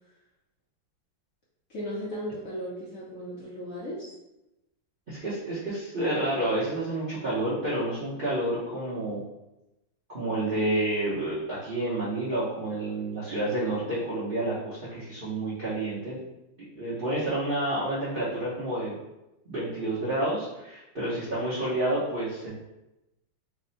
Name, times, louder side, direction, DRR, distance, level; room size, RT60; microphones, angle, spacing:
voice 1, 1.7-4.1, equal, 60° left, -7 dB, 0.9 m, -36 dB
voice 2, 5.1-9.2 10.1-16.2 16.8-19.0 19.5-22.5, right 1 dB, 55° right, -9 dB, 0.5 m, -29 dB
3.5 x 2.1 x 3.9 m, 0.93 s
omnidirectional pair, 2.2 m